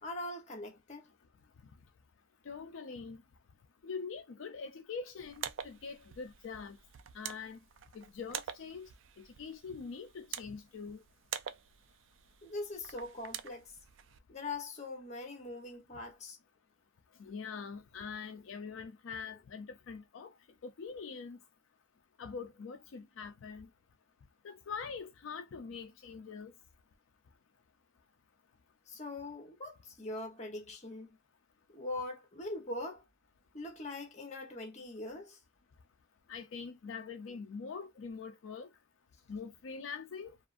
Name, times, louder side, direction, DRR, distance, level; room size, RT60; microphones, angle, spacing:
voice 1, 0.0-1.1 12.4-13.8 14.3-16.4 28.9-31.2 31.7-33.0 33.5-35.4, left 2 dB, 35° left, 0.9 m, -42 dB
voice 2, 2.5-3.2 3.8-6.8 7.1-7.6 7.9-8.9 9.2-11.0 17.2-20.3 20.6-21.4 22.2-23.7 24.4-26.5 36.3-38.7 39.3-40.4, left 5 dB, 75° left, 0.4 m, -44 dB
sound 1, 5.2-14.2, right 9 dB, 70° right, 0.4 m, -46 dB
2.5 x 2.4 x 2.4 m
head